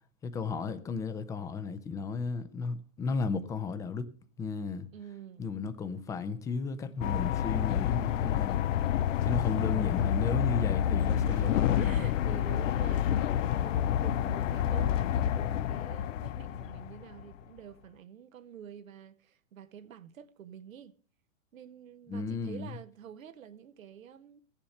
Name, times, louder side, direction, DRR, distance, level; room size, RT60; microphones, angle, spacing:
voice 1, 0.2-4.1 4.4-4.9 5.4-8.6 9.2-12.0 22.1-22.7, left 4 dB, 10° left, 0.5 m, -34 dB
voice 2, 4.9-5.5 8.0-8.3 9.2-10.2 11.3-20.9 21.5-24.4, right 9 dB, 90° right, 1.0 m, -48 dB
sound 1, 7.0-17.2, left 10 dB, 70° left, 0.6 m, -28 dB
14.0 x 7.2 x 6.4 m
hypercardioid pair, 135°, 39 cm